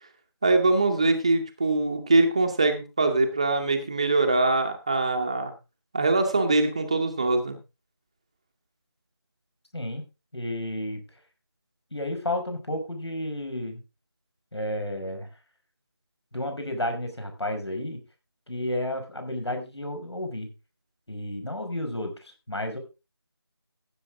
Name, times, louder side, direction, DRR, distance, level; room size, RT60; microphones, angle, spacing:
voice 1, 0.4-5.5 5.9-7.5, right 3 dB, 15° right, 5 dB, 0.7 m, -23 dB
voice 2, 10.3-11.0 11.9-13.8 14.5-15.3 16.3-18.0 18.5-20.5 21.1-22.8, left 1 dB, 80° left, 5 dB, 5.6 m, -32 dB
16.0 x 8.0 x 3.7 m, 0.28 s
figure-of-eight pair, 170°, 14 cm